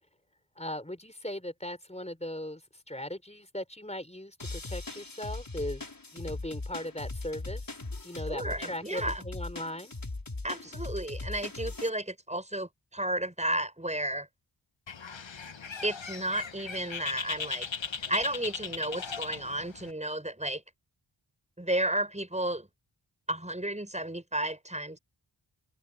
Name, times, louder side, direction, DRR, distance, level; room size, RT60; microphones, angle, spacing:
voice 1, 0.6-2.6 2.9-5.8 6.1-7.6 8.0-9.9 10.6-10.7, left 1 dB, 15° left, 4.6 m, -38 dB
sound 1, 4.4-11.9, left 2 dB, 45° left, 5.0 m, -39 dB
voice 2, 8.3-9.2 10.4-14.3 15.8-17.7 18.1-20.6 21.6-22.7 23.3-25.0, right 1 dB, 15° right, 7.6 m, -32 dB
Bird, 14.9-19.9, left 6 dB, 70° left, 1.5 m, -38 dB
open air
wide cardioid pair, 65°, 47 cm